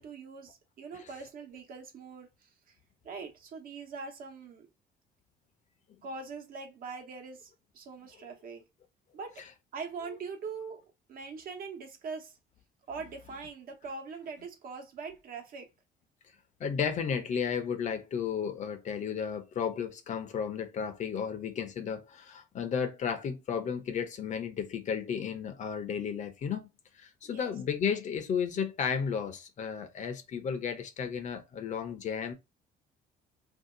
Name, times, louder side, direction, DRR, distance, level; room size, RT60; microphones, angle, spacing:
voice 1, 0.0-2.8 3.0-4.7 6.0-8.6 9.1-9.4 9.7-10.8 11.1-12.4 12.9-15.7 27.2-27.5, right 4 dB, 60° right, 1.0 m, -42 dB
voice 2, 16.6-26.7 26.9-32.3, left 7 dB, 45° left, 0.6 m, -33 dB
2.7 x 2.3 x 3.7 m
cardioid pair, 110°, 17 cm